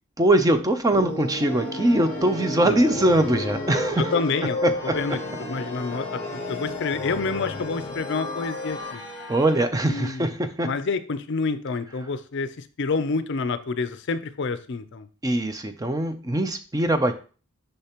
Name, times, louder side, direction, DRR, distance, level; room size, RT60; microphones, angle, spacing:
voice 1, 0.2-4.2 4.6-4.9 9.3-10.7 15.2-17.1, right 1 dB, 15° right, 8 dB, 0.4 m, -22 dB
sound 1, 0.9-8.9, left 2 dB, 30° left, 0.8 m, -32 dB
sound 2, 1.5-9.7, left 2 dB, 10° left, 3.3 m, -41 dB
voice 2, 4.0-4.6 4.8-9.0 9.9-10.3 10.6-15.1, left 4 dB, 55° left, 12 dB, 0.5 m, -28 dB
6.7 x 5.6 x 2.9 m, 0.37 s
head